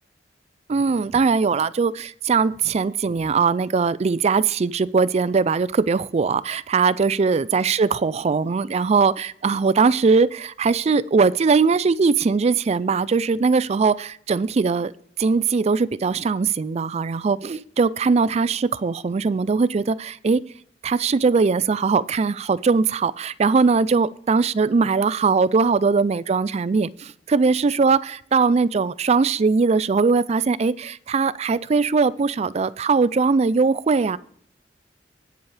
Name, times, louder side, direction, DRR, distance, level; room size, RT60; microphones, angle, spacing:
voice 1, 0.7-14.9 15.2-20.4 20.8-34.2, right 4 dB, 35° right, 19 dB, 0.4 m, -20 dB
18.0 x 7.1 x 3.3 m, 0.65 s
head